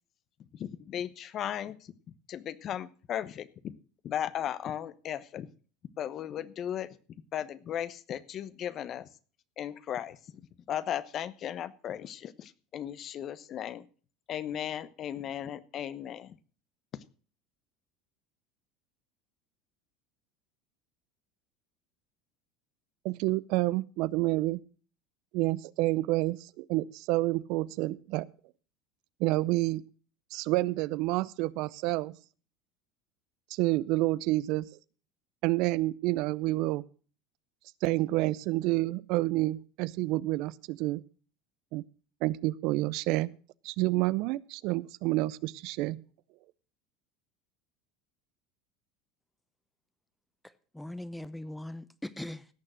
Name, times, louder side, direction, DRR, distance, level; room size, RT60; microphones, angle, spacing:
voice 1, 0.5-1.9 2.3-3.7 4.0-5.5 6.0-7.0 7.3-9.1 9.6-13.8 14.3-16.4 16.9-17.0, left 10 dB, 45° left, 16 dB, 1.0 m, -36 dB
voice 2, 23.0-24.6 25.3-28.3 29.2-29.8 30.3-32.2 33.5-34.7 35.4-36.8 37.8-41.0 41.7-41.8 42.2-43.3 43.6-46.0, right 19 dB, 65° right, 21 dB, 0.5 m, -29 dB
voice 3, 50.4-52.5, left 1 dB, 5° left, 14 dB, 0.8 m, -40 dB
17.0 x 6.6 x 6.3 m, 0.40 s
supercardioid pair, 100°, 0 cm